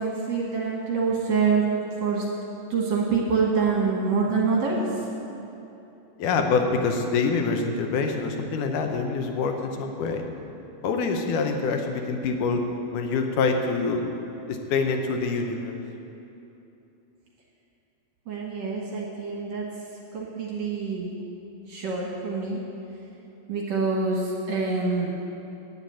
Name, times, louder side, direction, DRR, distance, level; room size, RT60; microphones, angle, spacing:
voice 1, 0.0-2.3 2.7-4.9 18.3-19.7 20.1-21.2 21.7-22.6 23.5-25.1, right 4 dB, 60° right, -2 dB, 1.9 m, -26 dB
voice 2, 6.2-10.2 10.8-12.6 12.9-14.0 14.5-15.8, left 4 dB, 70° left, 4 dB, 2.1 m, -25 dB
9.4 x 9.0 x 8.5 m, 2.9 s
omnidirectional pair, 4.2 m